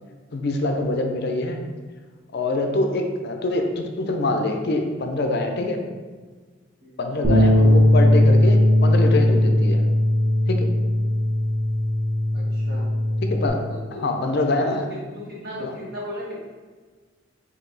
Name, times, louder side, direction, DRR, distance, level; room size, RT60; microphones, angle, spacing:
voice 1, 0.3-1.6 2.3-5.8 7.0-9.8 10.5-10.7 13.3-14.9 15.6-15.8, left 2 dB, 55° left, 4 dB, 0.5 m, -25 dB
Bass guitar, 7.2-13.5, left 1 dB, 25° right, 1.0 m, -18 dB
voice 2, 12.3-12.8 13.7-14.0 14.6-14.8 15.1-16.4, left 1 dB, 50° right, -6 dB, 1.4 m, -36 dB
4.9 x 2.7 x 3.8 m, 1.4 s
head